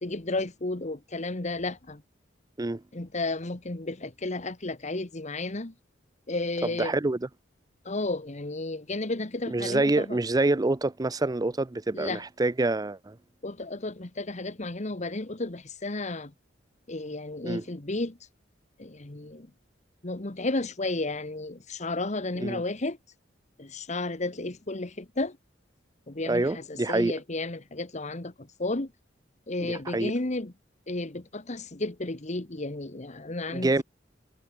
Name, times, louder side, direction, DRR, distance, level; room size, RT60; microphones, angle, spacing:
voice 1, 0.0-2.0 2.9-5.7 6.3-6.9 7.8-10.2 11.9-12.2 13.4-16.3 16.9-18.2 18.8-19.5 20.0-23.0 23.6-25.4 26.1-28.9 29.5-30.5 30.9-33.8, left 2 dB, 40° left, 1.4 m, -33 dB
voice 2, 6.6-7.3 9.5-13.2 17.4-17.6 22.4-22.6 26.3-27.1 29.6-30.1 33.5-33.8, right 2 dB, 20° right, 0.5 m, -26 dB
head